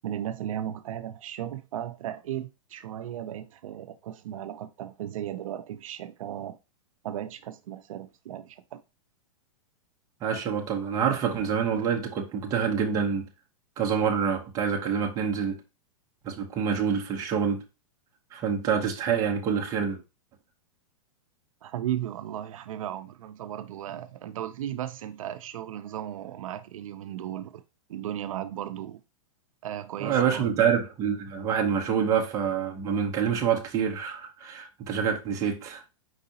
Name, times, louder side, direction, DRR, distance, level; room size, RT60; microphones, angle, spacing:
voice 1, 0.0-6.6 7.0-8.8 21.6-27.6 27.9-29.0 29.6-30.7, right 11 dB, 75° right, 0.5 m, -36 dB
voice 2, 10.2-13.3 13.8-15.6 16.2-17.6 18.3-20.0 30.0-35.9, right 7 dB, 20° right, 0.8 m, -26 dB
4.7 x 3.9 x 2.8 m
supercardioid pair, 160°, 17 cm